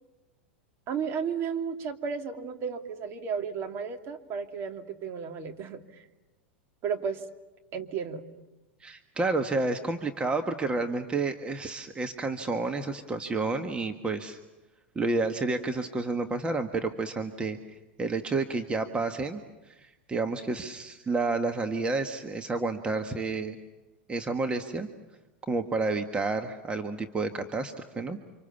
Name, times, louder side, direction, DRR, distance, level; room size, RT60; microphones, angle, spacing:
voice 1, 0.9-5.8 6.8-7.2 7.7-8.2, right 6 dB, 40° right, 5 dB, 2.7 m, -33 dB
voice 2, 8.8-14.4 14.9-17.6 18.0-19.4 19.7-23.6 24.1-24.9 25.5-28.2, right 3 dB, 20° right, 6 dB, 1.7 m, -30 dB
30.0 x 26.5 x 7.2 m, 1.1 s
hypercardioid pair, 95°, 6 cm